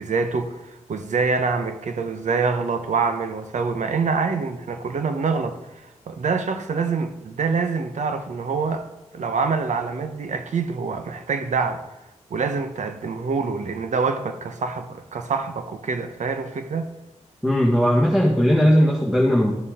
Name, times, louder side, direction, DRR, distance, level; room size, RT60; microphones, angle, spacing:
voice 1, 0.0-8.8 9.1-11.8 12.3-16.9, right 4 dB, 80° right, 1.0 m, -25 dB
voice 2, 17.4-19.5, equal, 5° right, 1.5 m, -18 dB
12.5 x 6.9 x 3.7 m
cardioid pair, 70°, 12 cm